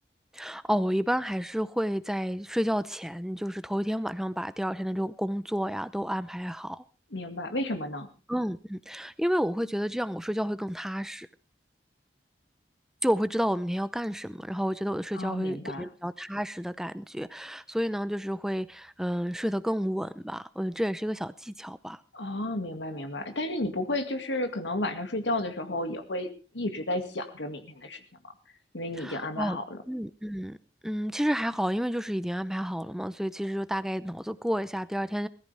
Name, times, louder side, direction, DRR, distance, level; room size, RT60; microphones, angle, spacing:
voice 1, 0.3-6.8 8.3-11.3 13.0-22.0 29.0-29.6 29.9-30.6 30.8-35.3, equal, 5° right, 0.6 m, -30 dB
voice 2, 7.1-8.1 15.1-15.9 22.1-26.3 26.5-28.3 28.7-29.8, left 1 dB, 85° left, 2.2 m, -32 dB
21.0 x 14.0 x 3.4 m
head